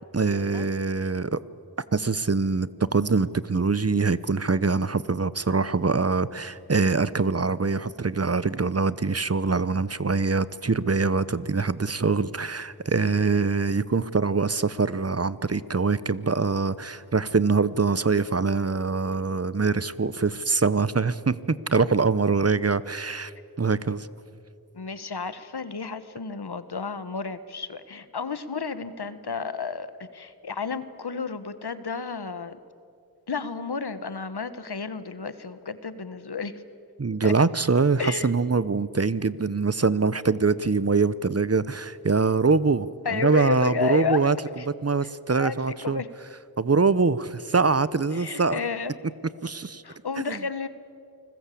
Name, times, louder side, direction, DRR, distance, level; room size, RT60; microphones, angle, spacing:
voice 1, 0.1-1.4 1.9-23.3 23.6-24.1 37.0-44.4 44.7-46.0 46.6-48.6 49.4-49.8 50.3-50.4, right 4 dB, 40° right, 17 dB, 0.8 m, -24 dB
voice 2, 24.7-32.6 33.3-36.6 37.2-37.3 38.0-38.5 43.0-44.2 44.6-44.7 45.0-46.1 48.1-48.9 49.8-50.7, left 5 dB, 85° left, 13 dB, 1.3 m, -32 dB
29.0 x 20.5 x 8.5 m, 2.5 s
wide cardioid pair, 60°, 38 cm